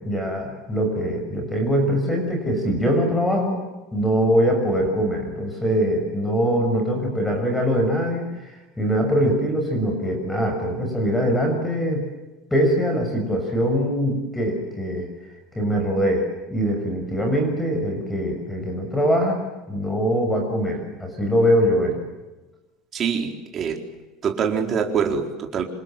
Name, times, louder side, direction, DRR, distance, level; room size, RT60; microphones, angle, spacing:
voice 1, 0.0-3.6 3.9-8.5 8.8-12.0 12.5-15.1 15.5-19.4 19.7-22.0, equal, 5° left, 3 dB, 6.7 m, -22 dB
voice 2, 22.9-23.8 24.2-25.6, right 6 dB, 30° right, 3 dB, 4.3 m, -24 dB
28.0 x 27.5 x 7.6 m, 1.1 s
cardioid pair, 160°, 0 cm